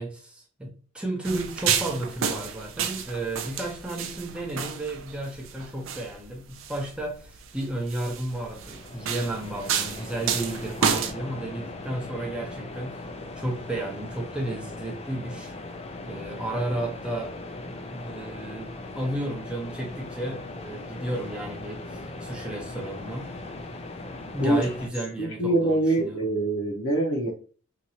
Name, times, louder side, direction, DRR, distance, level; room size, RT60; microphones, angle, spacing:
voice 1, 0.0-13.0 13.4-15.5 16.1-17.3 17.7-23.3 24.3-26.2, right 1 dB, 5° right, 0.6 m, -33 dB
sound 1, 1.2-11.1, right 7 dB, 65° right, 0.4 m, -31 dB
sound 2, 8.2-24.9, left 2 dB, 30° left, 0.3 m, -39 dB
voice 2, 25.2-27.3, right 2 dB, 65° left, 0.8 m, -24 dB
2.8 x 2.5 x 2.8 m
head